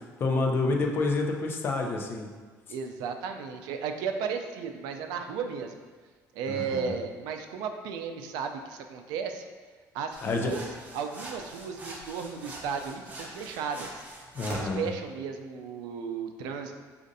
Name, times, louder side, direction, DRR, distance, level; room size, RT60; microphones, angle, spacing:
voice 1, 0.2-2.3 6.5-6.9 10.2-10.6 14.3-14.9, left 3 dB, 35° left, 2 dB, 0.5 m, -28 dB
voice 2, 2.7-5.8 6.3-9.5 9.9-10.6 10.9-14.0 14.4-16.7, right 6 dB, 90° right, 6 dB, 0.4 m, -34 dB
sound 1, 10.1-14.8, right 1 dB, 25° right, 0.6 m, -43 dB
6.1 x 2.5 x 2.6 m, 1.4 s
cardioid pair, 155°, 7 cm